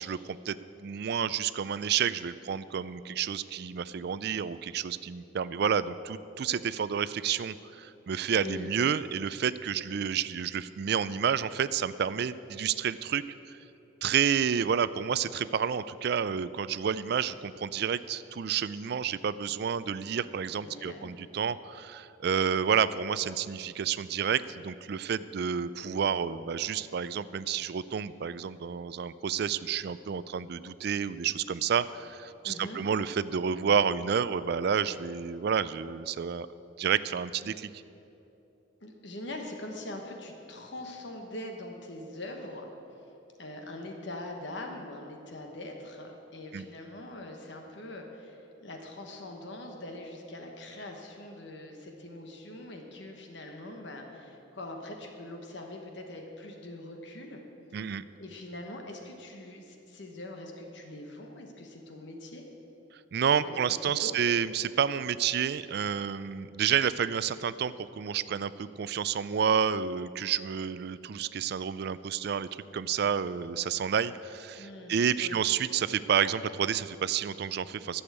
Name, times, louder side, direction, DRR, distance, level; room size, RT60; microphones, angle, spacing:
voice 1, 0.0-13.6 14.0-36.5 36.8-37.7 46.5-46.7 57.7-58.0 63.1-78.0, right 7 dB, 55° right, 16 dB, 0.3 m, -30 dB
voice 2, 8.3-8.7 20.6-21.1 32.4-32.8 38.8-42.7 43.4-57.4 57.7-57.8 58.2-62.4 63.4-63.6 63.8-64.2 74.6-75.4, left 1 dB, 60° left, 3 dB, 1.2 m, -42 dB
11.5 x 7.1 x 8.2 m, 2.9 s
head